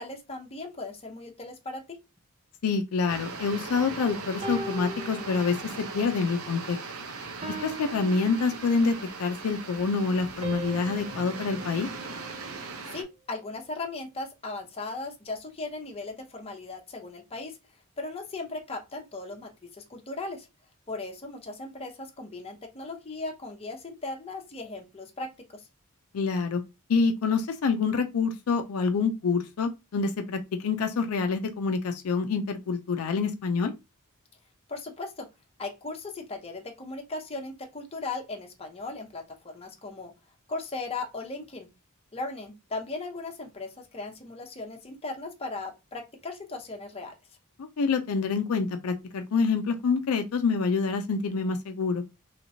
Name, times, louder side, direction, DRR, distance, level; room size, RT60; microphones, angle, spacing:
voice 1, 0.0-2.0 12.9-17.6 18.0-20.5 20.9-25.3 25.5-25.7 34.7-35.3 35.6-40.1 40.5-41.7 42.1-47.1, left 3 dB, 25° left, 0.7 m, -37 dB
voice 2, 2.6-6.8 7.6-11.9 26.1-26.6 26.9-33.7 47.6-52.0, left 4 dB, 75° left, 0.4 m, -27 dB
sound 1, 3.1-13.0, right 4 dB, 75° right, 0.7 m, -39 dB
sound 2, 4.4-6.0 6.4-6.7 7.4-9.1 10.4-12.8, right 2 dB, 25° right, 0.6 m, -40 dB
3.2 x 2.9 x 2.6 m
head